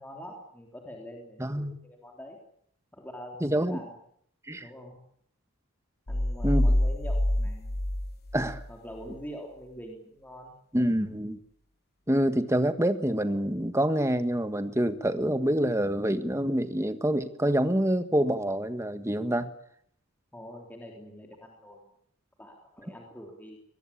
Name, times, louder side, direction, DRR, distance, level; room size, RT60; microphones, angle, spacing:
voice 1, 0.0-2.4 2.9-3.9 4.6-5.0 6.1-7.8 8.7-10.5 20.3-21.9 22.4-23.6, equal, 10° left, 0 dB, 3.4 m, -44 dB
voice 2, 1.4-1.7 3.4-3.8 4.5-4.7 6.4-6.7 8.3-8.6 10.7-11.4 12.1-19.5, right 1 dB, 15° right, 10 dB, 1.5 m, -26 dB
sound 1, 6.1-8.7, left 1 dB, 45° left, 1.3 m, -26 dB
23.0 x 20.5 x 8.6 m, 0.69 s
head